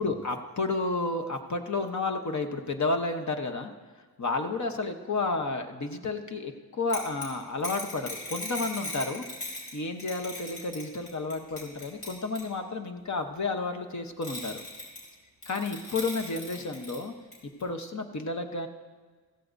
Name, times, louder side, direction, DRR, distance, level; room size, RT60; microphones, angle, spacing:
voice 1, 0.0-3.7 4.2-9.3 9.7-14.6 15.5-17.1 17.6-18.7, left 3 dB, 45° left, 6 dB, 1.0 m, -31 dB
sound 1, 6.9-9.7 10.0-12.5 14.2-15.1 15.4-17.0 17.3-17.4 17.6-17.7, left 2 dB, 70° left, 4.4 m, -38 dB
15.0 x 14.0 x 2.6 m, 1.5 s
wide cardioid pair, 95°, 39 cm